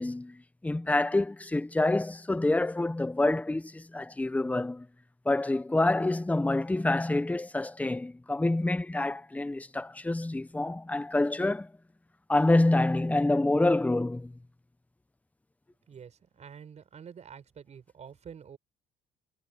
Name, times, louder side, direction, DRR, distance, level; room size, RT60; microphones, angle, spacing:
voice 1, 0.0-4.9 5.2-11.7 12.3-14.3, left 2 dB, 10° left, 0.9 m, -27 dB
voice 2, 15.9-18.6, right 7 dB, 40° right, 4.9 m, -48 dB
cardioid pair, 110°, 17 cm